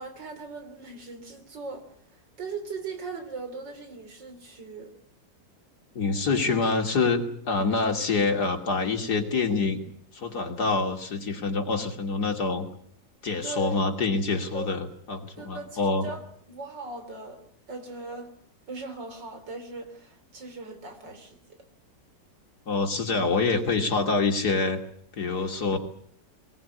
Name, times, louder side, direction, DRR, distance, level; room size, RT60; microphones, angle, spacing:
voice 1, 0.0-4.9 13.4-13.8 14.5-14.7 15.4-16.2 16.5-17.4 17.7-18.3 18.7-21.6, right 3 dB, 80° right, 7 dB, 4.1 m, -39 dB
voice 2, 5.9-9.8 10.1-12.7 13.2-16.1 22.7-24.8 25.1-25.8, left 4 dB, 60° left, 4 dB, 3.2 m, -26 dB
22.5 x 18.5 x 9.5 m, 0.63 s
omnidirectional pair, 1.9 m